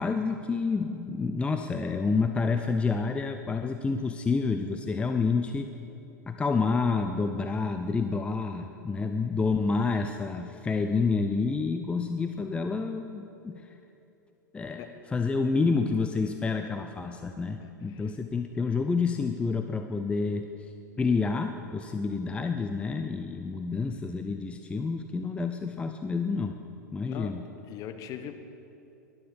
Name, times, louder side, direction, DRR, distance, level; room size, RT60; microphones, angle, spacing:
voice 1, 0.0-5.7 6.3-13.7 14.5-20.5 21.0-26.6 26.9-27.5, left 4 dB, 10° left, 6 dB, 0.6 m, -29 dB
voice 2, 27.7-28.3, left 10 dB, 35° left, 7 dB, 1.3 m, -39 dB
19.0 x 12.0 x 5.1 m, 2.8 s
figure-of-eight pair, 95°, 10 cm